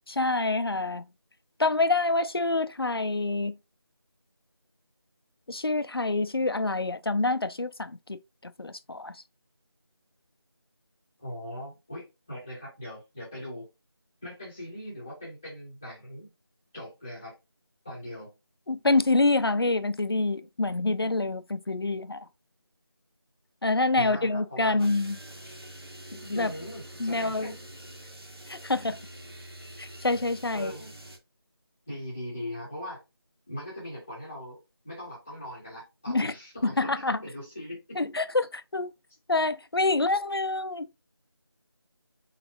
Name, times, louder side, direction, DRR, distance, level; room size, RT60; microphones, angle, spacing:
voice 1, 0.1-1.1 1.6-3.6 5.5-9.2 18.7-22.3 23.6-25.2 26.1-26.5 27.0-27.5 28.5-29.0 29.8-30.7 36.1-36.3 36.6-37.2 38.0-38.9 39.3-41.0, left 2 dB, 65° left, 0.6 m, -27 dB
voice 2, 11.2-13.7 14.2-16.3 16.7-17.3 17.8-18.3 23.9-24.9 25.4-25.5 26.3-27.6 30.5-30.9 31.9-33.0 33.5-34.6 34.8-36.9 37.2-38.1, left 1 dB, 5° left, 1.0 m, -40 dB
sound 1, 24.8-31.2, right 1 dB, 70° right, 1.8 m, -45 dB
4.1 x 4.0 x 2.6 m
figure-of-eight pair, 175°, 13 cm